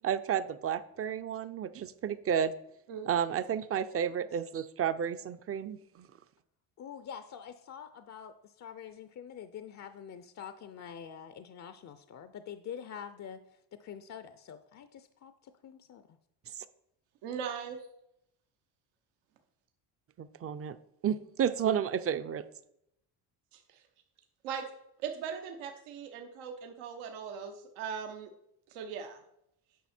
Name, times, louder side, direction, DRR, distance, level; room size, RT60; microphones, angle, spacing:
voice 1, 0.0-2.5 3.1-6.1 20.2-20.8 21.0-22.4, right 8 dB, 30° right, 13 dB, 0.5 m, -31 dB
voice 2, 6.8-13.4 13.8-16.2, left 8 dB, 35° left, 11 dB, 0.5 m, -46 dB
voice 3, 17.2-17.8 23.5-23.6 24.4-24.6 25.0-28.3 28.7-29.2, right 7 dB, 85° right, 4 dB, 1.0 m, -39 dB
9.3 x 5.7 x 4.3 m, 0.79 s
cardioid pair, 100°, 48 cm